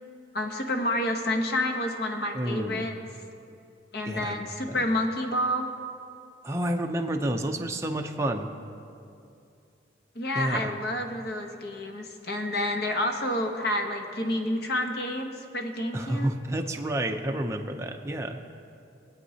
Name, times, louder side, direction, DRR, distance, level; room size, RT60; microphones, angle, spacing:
voice 1, 0.3-2.9 3.9-5.7 10.1-16.3, left 1 dB, 55° left, 4 dB, 1.0 m, -29 dB
voice 2, 2.3-2.9 4.0-4.8 6.4-8.5 10.3-10.7 15.9-18.4, right 1 dB, 15° right, 3 dB, 0.6 m, -30 dB
22.5 x 8.3 x 2.8 m, 2.6 s
head